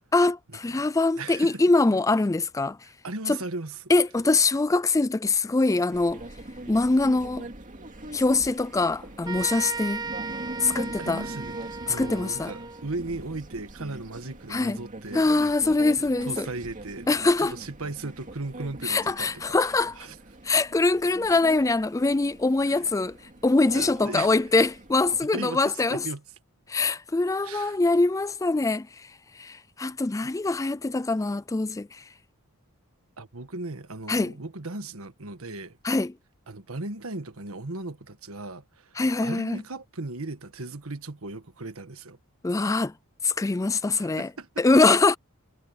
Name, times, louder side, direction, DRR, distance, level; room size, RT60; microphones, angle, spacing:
voice 1, 0.1-2.8 3.3-3.4 3.9-6.2 6.7-7.5 8.1-10.0 10.6-11.2 11.9-12.5 14.5-14.8 15.1-16.5 17.1-17.5 18.8-19.9 20.4-23.2 23.4-26.1 26.7-32.0 34.1-34.3 35.8-36.1 39.0-39.6 42.4-42.9 43.2-44.3 44.6-45.2, left 3 dB, 15° left, 0.3 m, -23 dB
voice 2, 1.2-1.6 2.8-3.9 11.0-15.3 16.0-17.1 17.4-19.4 20.0-20.1 22.7-22.8 23.7-24.3 25.3-26.2 27.4-27.8 33.2-35.8 36.5-38.9 39.2-42.2 44.0-44.5, right 2 dB, 65° right, 1.5 m, -37 dB
sound 1, 5.9-25.3, right 1 dB, 35° right, 2.4 m, -42 dB
sound 2, 9.2-12.9, right 4 dB, 20° right, 1.1 m, -36 dB
head